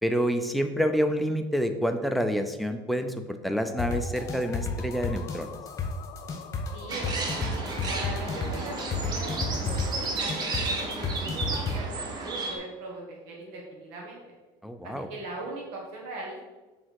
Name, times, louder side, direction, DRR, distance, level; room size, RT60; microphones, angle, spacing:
voice 1, 0.0-5.5 14.6-15.1, equal, ahead, 6 dB, 0.5 m, -28 dB
sound 1, 3.6-11.4, left 8 dB, 55° left, 0.4 m, -44 dB
sound 2, 3.8-11.8, left 5 dB, 30° left, 1.2 m, -31 dB
voice 2, 6.7-14.2 14.8-16.4, right 2 dB, 75° right, -3 dB, 1.5 m, -40 dB
sound 3, 6.9-12.6, right 3 dB, 40° right, 1.1 m, -33 dB
6.2 x 3.7 x 4.8 m, 1.2 s
cardioid pair, 120°, 11 cm